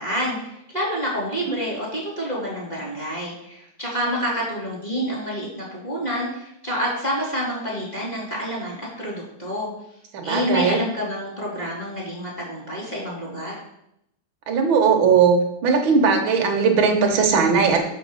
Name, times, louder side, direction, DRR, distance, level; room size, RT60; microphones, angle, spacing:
voice 1, 0.0-9.7 10.2-13.6, equal, 15° left, -6 dB, 2.6 m, -28 dB
voice 2, 10.1-10.8 14.5-15.4 15.6-17.9, right 5 dB, 70° right, 2 dB, 1.2 m, -18 dB
6.1 x 5.9 x 6.5 m, 0.78 s
omnidirectional pair, 3.7 m